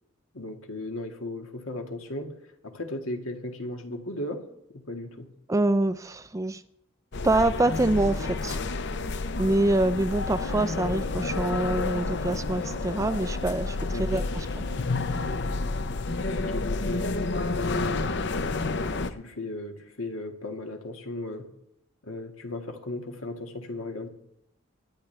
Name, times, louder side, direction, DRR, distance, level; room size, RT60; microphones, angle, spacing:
voice 1, 0.3-5.3 13.9-14.2 16.3-18.3 19.0-21.5 22.0-24.1, left 2 dB, 80° left, 4 dB, 1.8 m, -36 dB
voice 2, 5.5-6.6 7.2-8.6 9.4-14.2, right 2 dB, 15° right, 12 dB, 0.4 m, -25 dB
sound 1, 7.1-19.1, left 3 dB, 55° left, 0.7 m, -30 dB
24.5 x 10.5 x 3.3 m, 0.76 s
head